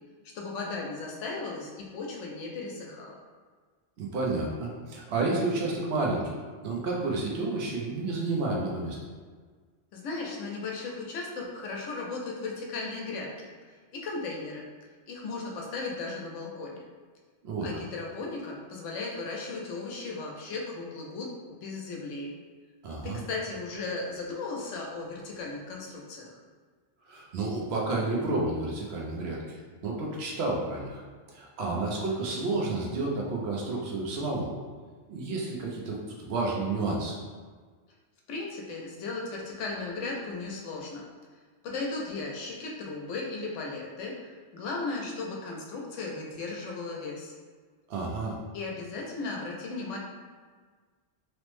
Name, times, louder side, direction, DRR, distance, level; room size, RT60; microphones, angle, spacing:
voice 1, 0.3-3.2 9.9-13.5 13.9-14.6 15.1-16.8 17.6-22.3 23.0-26.4 38.3-41.1 41.6-47.3 48.5-50.0, left 3 dB, 80° left, -1 dB, 0.9 m, -36 dB
voice 2, 4.0-6.3 6.6-9.0 17.4-17.7 22.8-23.2 27.1-29.6 29.8-31.0 31.3-34.5 35.1-37.2 47.9-48.4, right 2 dB, 65° right, -2 dB, 0.8 m, -30 dB
3.1 x 2.0 x 3.0 m, 1.5 s
omnidirectional pair, 1.2 m